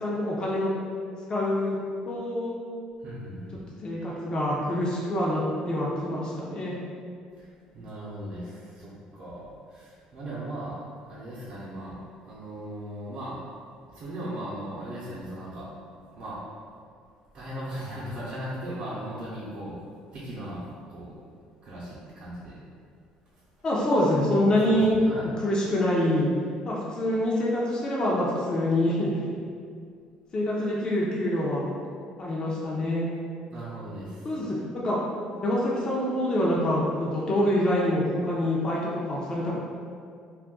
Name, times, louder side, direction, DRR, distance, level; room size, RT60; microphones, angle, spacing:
voice 1, 0.0-0.7 1.3-1.8 2.1-2.5 3.8-5.4 5.7-6.7 23.6-25.0 25.4-26.3 26.7-29.1 30.3-31.7 32.2-33.1 34.2-35.0 35.4-39.5, left 1 dB, 35° left, -5 dB, 0.6 m, -25 dB
voice 2, 3.0-3.6 7.4-7.5 7.7-10.8 11.1-12.0 12.2-13.4 13.9-15.7 16.2-16.4 17.3-19.8 20.1-21.1 21.6-22.6 24.6-25.3 33.5-34.4, right 1 dB, 55° right, -8 dB, 0.7 m, -38 dB
2.4 x 2.2 x 3.6 m, 2.2 s
supercardioid pair, 90°, 2 cm